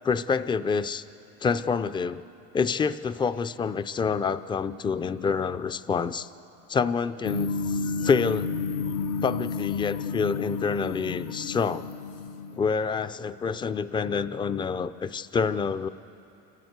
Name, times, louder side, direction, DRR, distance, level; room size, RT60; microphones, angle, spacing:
voice 1, 0.0-1.0 1.4-2.2 2.5-6.3 6.7-8.5 9.2-11.9 12.6-15.9, left 5 dB, 15° left, 13 dB, 0.4 m, -27 dB
sound 1, 7.2-12.6, left 5 dB, 80° left, 0.8 m, -31 dB
28.5 x 12.5 x 8.1 m, 2.9 s
supercardioid pair, 120°, 33 cm